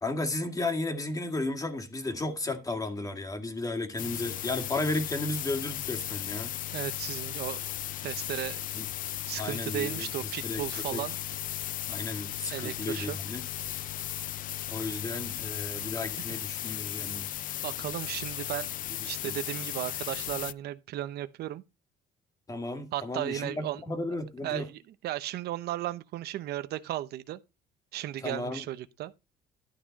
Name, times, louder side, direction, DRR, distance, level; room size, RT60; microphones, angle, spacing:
voice 1, 0.0-6.5 8.7-8.9 9.4-10.6 10.9-11.0 11.9-13.4 14.7-17.3 19.2-19.4 22.5-24.7 28.2-28.7, left 2 dB, 20° left, 2.1 m, -34 dB
sound 1, 4.0-20.5, left 13 dB, 55° left, 0.4 m, -36 dB
voice 2, 6.7-7.6 8.0-8.6 9.3-11.2 12.5-13.2 16.3-16.4 17.6-18.7 19.0-21.6 22.9-23.8 24.4-27.4 27.9-29.1, right 13 dB, 75° right, 0.8 m, -35 dB
12.0 x 6.2 x 4.1 m
cardioid pair, 110°, 17 cm